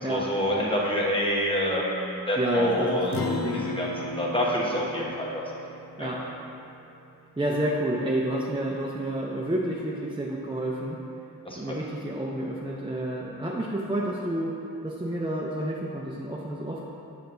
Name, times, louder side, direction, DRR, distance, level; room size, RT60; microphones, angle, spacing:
voice 1, 0.0-3.1 3.5-5.4 6.0-6.1 11.4-11.8, equal, 15° left, -4 dB, 1.0 m, -27 dB
voice 2, 2.4-3.7 6.0-6.3 7.4-11.0 11.6-14.6 14.8-16.8, right 1 dB, 15° right, -4 dB, 0.5 m, -29 dB
Acoustic guitar, 3.1-7.8, left 2 dB, 70° left, 0.5 m, -37 dB
7.0 x 5.7 x 2.6 m, 2.6 s
wide cardioid pair, 60°, 36 cm